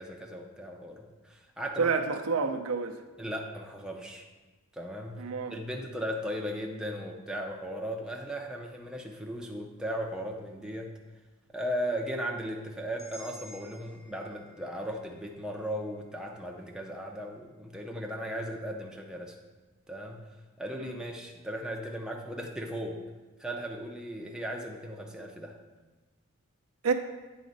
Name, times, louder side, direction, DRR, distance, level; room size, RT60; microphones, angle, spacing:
voice 1, 0.0-1.9 3.2-4.3 4.7-10.9 11.5-19.4 19.9-20.2 20.6-23.0 23.4-25.6, equal, 5° right, 0 dB, 0.5 m, -37 dB
voice 2, 1.8-3.0 5.2-5.5 20.8-21.0 26.8-26.9, right 5 dB, 70° right, 5 dB, 0.6 m, -28 dB
sound 1, 13.0-17.0, equal, 25° left, 0.9 m, -53 dB
9.3 x 4.2 x 4.0 m, 1.2 s
head